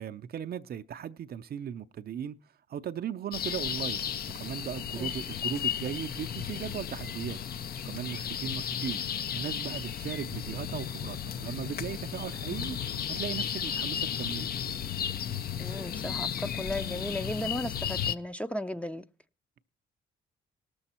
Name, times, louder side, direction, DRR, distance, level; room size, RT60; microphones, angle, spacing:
voice 1, 0.0-2.4 2.7-4.1 4.3-7.4 7.8-9.0 9.3-12.8 13.1-14.5, right 9 dB, 50° right, 0.5 m, -37 dB
sound 1, 3.3-18.2, left 9 dB, 50° left, 0.6 m, -34 dB
voice 2, 15.6-19.0, left 1 dB, 5° left, 0.5 m, -35 dB
18.0 x 6.9 x 4.3 m
cardioid pair, 90°, 20 cm